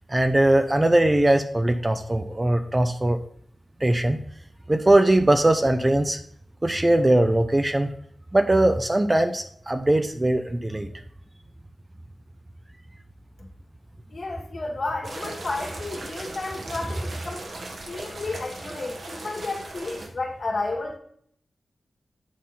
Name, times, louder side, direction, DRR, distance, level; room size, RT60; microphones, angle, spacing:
voice 1, 0.1-3.2 3.8-4.2 4.7-6.2 6.6-7.9 8.3-10.9, right 1 dB, 20° right, 7 dB, 0.7 m, -20 dB
voice 2, 14.1-17.5 17.9-21.0, left 2 dB, 55° left, 0 dB, 2.0 m, -32 dB
sound 1, 15.0-20.1, right 2 dB, 65° right, 1.5 m, -38 dB
8.7 x 3.8 x 5.8 m, 0.64 s
wide cardioid pair, 85°, 0 cm